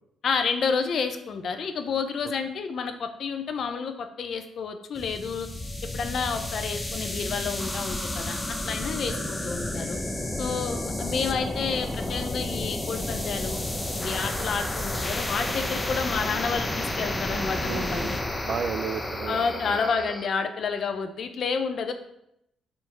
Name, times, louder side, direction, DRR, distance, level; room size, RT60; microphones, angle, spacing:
voice 1, 0.2-5.5 5.9-8.4 8.6-10.0 10.4-13.6 13.9-18.2 19.3-21.9, left 5 dB, 60° left, 7 dB, 0.7 m, -30 dB
sound 1, 5.0-20.3, left 1 dB, 15° left, 0.7 m, -31 dB
voice 2, 17.6-19.8, right 7 dB, 60° right, 13 dB, 0.4 m, -34 dB
5.5 x 4.5 x 4.6 m, 0.78 s
cardioid pair, 90°, 0 cm